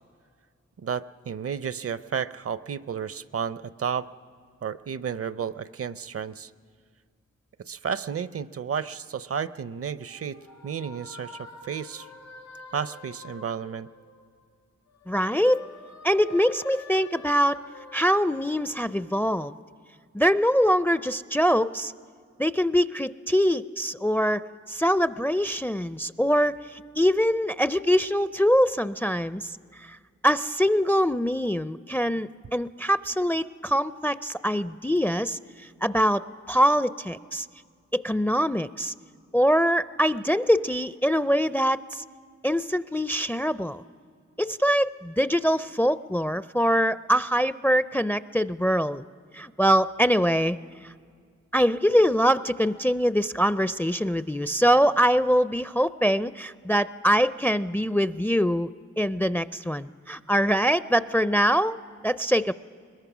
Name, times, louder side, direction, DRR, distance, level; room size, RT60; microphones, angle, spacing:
voice 1, 0.8-4.1 4.6-6.5 7.7-10.4 10.6-12.1 12.7-13.9, right 7 dB, 50° right, 16 dB, 0.6 m, -32 dB
sound 1, 9.5-14.5 14.9-19.6, left 3 dB, 75° left, 2.4 m, -47 dB
voice 2, 15.1-15.7 16.0-17.6 17.9-19.5 20.1-21.9 22.4-24.4 24.7-30.0 30.2-35.4 35.8-37.5 37.9-38.9 39.3-42.0 42.4-43.8 44.4-49.0 49.3-50.6 51.5-58.7 59.0-61.8 62.0-62.5, equal, 5° left, 15 dB, 0.4 m, -23 dB
21.5 x 21.0 x 6.2 m, 2.1 s
cardioid pair, 45°, 29 cm